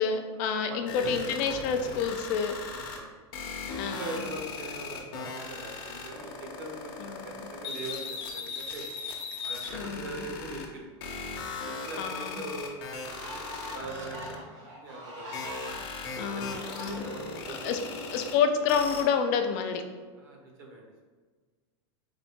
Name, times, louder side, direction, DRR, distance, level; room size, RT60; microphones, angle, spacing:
voice 1, 0.0-2.5 3.8-4.1 7.0-7.3 9.7-10.2 12.0-12.4 16.1-17.1 17.5-17.8 18.1-19.8, left 6 dB, 35° left, 6 dB, 0.4 m, -29 dB
voice 2, 0.7-1.2 2.7-3.1 3.7-6.9 7.2-8.9 9.4-10.9 11.6-12.8 13.3-15.4 16.0-17.9 20.2-21.0, right 2 dB, 40° right, 0 dB, 0.9 m, -42 dB
sound 1, 0.9-3.0 3.3-10.7 11.0-14.3 15.3-18.3 18.7-19.0, left 4 dB, 50° left, 0.7 m, -38 dB
sound 2, 12.6-17.5, equal, 80° right, 1.4 m, -44 dB
3.9 x 3.7 x 3.5 m, 1.5 s
supercardioid pair, 170°, 15 cm